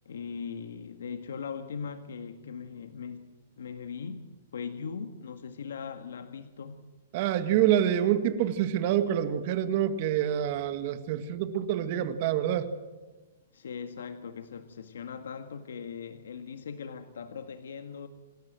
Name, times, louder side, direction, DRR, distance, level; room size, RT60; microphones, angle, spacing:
voice 1, 0.1-3.3 3.6-4.3 4.5-6.9 13.5-18.1, left 6 dB, 90° left, 8 dB, 1.8 m, -39 dB
voice 2, 7.1-12.7, right 10 dB, 40° right, 10 dB, 1.9 m, -27 dB
27.5 x 13.0 x 7.7 m, 1.2 s
hypercardioid pair, 160°, 0 cm